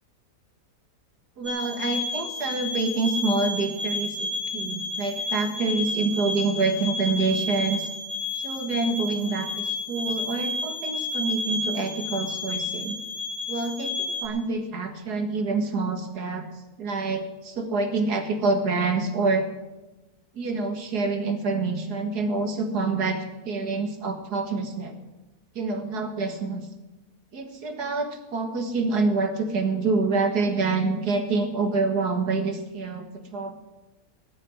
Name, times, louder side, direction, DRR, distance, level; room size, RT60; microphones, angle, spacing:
voice 1, 1.4-7.9 8.3-13.0 13.5-16.4 16.8-19.4 20.3-25.0 25.6-26.7 27.3-33.5, right 3 dB, 70° right, 6 dB, 2.3 m, -27 dB
sound 1, 1.5-14.3, left 2 dB, 20° right, 3.6 m, -31 dB
19.5 x 6.5 x 9.9 m, 1.1 s
omnidirectional pair, 1.8 m